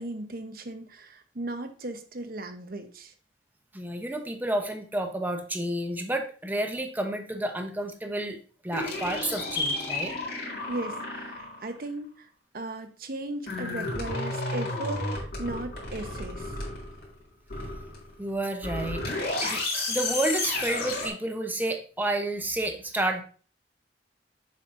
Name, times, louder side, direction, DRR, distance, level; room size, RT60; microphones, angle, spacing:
voice 1, 0.0-3.1 10.7-12.3 12.5-16.5, right 2 dB, 55° right, 7 dB, 0.9 m, -37 dB
voice 2, 3.7-8.4 8.6-10.1 18.2-23.2, right 1 dB, 10° right, 5 dB, 0.8 m, -30 dB
sound 1, 8.7-11.7 13.5-17.1 17.5-18.2 18.6-21.1, left 2 dB, 60° left, 2.3 m, -32 dB
7.2 x 5.4 x 2.6 m, 0.40 s
head